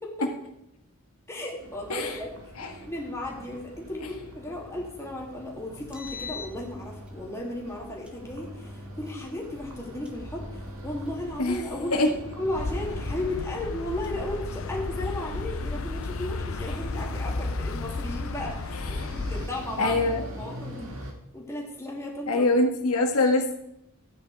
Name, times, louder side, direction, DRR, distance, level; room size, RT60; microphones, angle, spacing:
voice 1, 1.3-2.3 2.8-10.4 10.8-12.1 12.4-20.0 20.4-20.9 21.3-22.5, left 1 dB, 15° left, -2 dB, 2.5 m, -35 dB
sound 1, 1.6-21.1, equal, 65° right, 2.4 m, -44 dB
Engine, 5.8-7.2 8.1-9.2 10.0-11.3 12.0-13.3 14.0-15.4 16.0-17.3, left 1 dB, 5° right, 1.4 m, -42 dB
sound 2, 12.5-19.5, left 3 dB, 65° left, 0.6 m, -33 dB
voice 2, 19.8-20.2 22.3-23.6, left 2 dB, 80° left, 3 dB, 1.8 m, -23 dB
13.5 x 9.4 x 4.8 m, 0.79 s
head